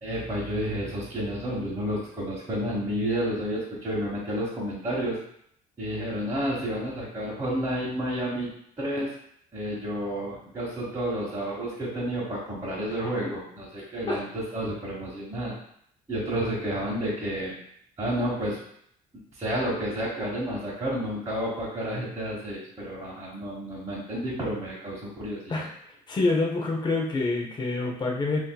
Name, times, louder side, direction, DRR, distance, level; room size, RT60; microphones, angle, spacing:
voice 1, 0.0-5.2 5.8-8.5 8.8-9.1 9.5-15.5 16.1-17.5 18.0-18.6 19.4-25.6, equal, 20° right, -7 dB, 1.1 m, -30 dB
voice 2, 26.1-28.4, left 3 dB, 25° left, 0 dB, 0.6 m, -26 dB
5.7 x 2.7 x 2.2 m, 0.69 s
cardioid pair, 110°, 17 cm